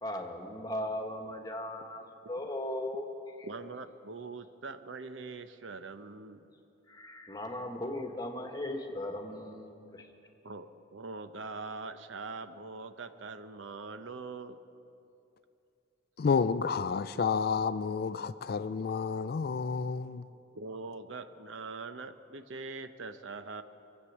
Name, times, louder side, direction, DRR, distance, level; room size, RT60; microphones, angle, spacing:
voice 1, 0.0-3.1 3.4-3.5 6.9-10.0, left 1 dB, 20° left, 1.4 m, -38 dB
voice 2, 3.4-6.5 10.4-14.6 20.5-23.6, right 3 dB, 85° right, 0.8 m, -42 dB
voice 3, 16.2-20.2, left 5 dB, 55° left, 0.4 m, -30 dB
23.5 x 8.2 x 7.3 m
head